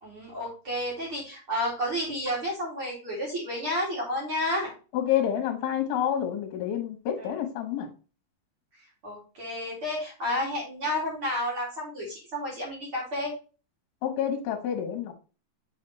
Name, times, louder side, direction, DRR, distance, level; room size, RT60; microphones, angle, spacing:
voice 1, 0.0-4.7 7.2-7.3 9.0-13.3, left 1 dB, 35° right, -4 dB, 2.6 m, -31 dB
voice 2, 4.9-7.9 14.0-15.1, left 10 dB, 65° left, 3 dB, 2.8 m, -28 dB
8.3 x 4.1 x 3.1 m, 0.33 s
omnidirectional pair, 5.1 m